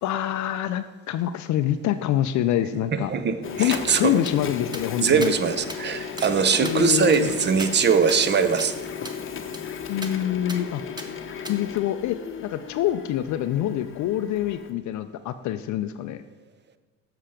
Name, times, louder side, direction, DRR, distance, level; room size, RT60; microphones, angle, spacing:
voice 1, 0.0-3.1 3.6-5.3 6.6-7.3 9.9-10.8 11.5-16.2, left 12 dB, 50° left, 10 dB, 0.5 m, -26 dB
voice 2, 2.9-4.2 5.0-8.8, right 6 dB, 30° right, 11 dB, 0.7 m, -22 dB
Printer, 3.4-14.7, left 7 dB, 35° left, 0.9 m, -35 dB
sound 1, 4.3-4.4 4.7-4.8 5.2-5.3 5.7-5.8 6.2-6.3 6.6-8.3 8.6-8.7 9.0-9.2 9.5-9.6 10.0-10.1 10.5-10.6 11.0-11.1 11.4-11.6, right 1 dB, 10° right, 1.0 m, -38 dB
7.4 x 5.7 x 5.0 m, 1.3 s
hypercardioid pair, 75°, 37 cm